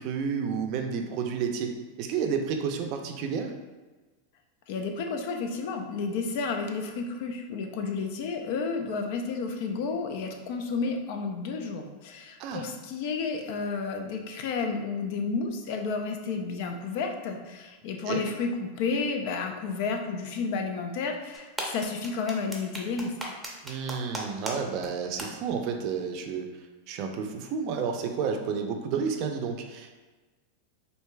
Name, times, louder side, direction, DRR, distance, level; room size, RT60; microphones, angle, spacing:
voice 1, 0.0-3.5 12.4-12.6 18.1-18.2 23.6-26.5 26.9-30.0, right 6 dB, 50° right, 4 dB, 0.5 m, -31 dB
voice 2, 4.7-23.1, left 4 dB, 60° left, 4 dB, 0.5 m, -31 dB
sound 1, 21.3-24.5 24.8-24.9 25.2-25.3, right 1 dB, 5° right, 0.7 m, -35 dB
4.6 x 2.7 x 2.2 m, 1.3 s
hypercardioid pair, 110°, 0 cm